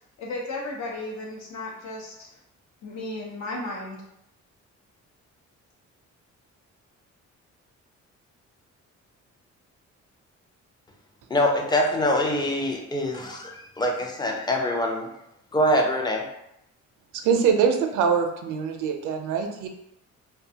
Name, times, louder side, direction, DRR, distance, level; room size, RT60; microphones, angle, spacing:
voice 1, 0.2-2.3 2.8-4.0, left 2 dB, 65° left, -2 dB, 0.8 m, -34 dB
voice 2, 11.3-15.1 15.5-16.2, left 1 dB, 15° left, 0 dB, 0.5 m, -24 dB
voice 3, 17.1-19.7, right 6 dB, 80° right, 5 dB, 0.5 m, -23 dB
2.4 x 2.2 x 2.7 m, 0.81 s
cardioid pair, 90°, 30 cm